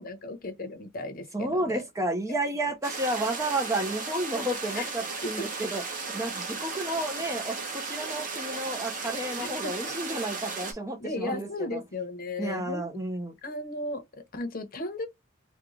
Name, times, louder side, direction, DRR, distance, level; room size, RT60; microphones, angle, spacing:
voice 1, 0.0-1.8 2.6-2.7 4.7-4.9 5.2-5.5 9.4-10.0 11.0-12.9 13.4-15.1, left 2 dB, 45° left, 0.9 m, -36 dB
voice 2, 1.3-11.8 12.4-13.4, right 1 dB, 15° right, 0.6 m, -31 dB
sound 1, 2.8-10.7, right 4 dB, 40° right, 1.2 m, -35 dB
3.7 x 2.3 x 3.0 m
head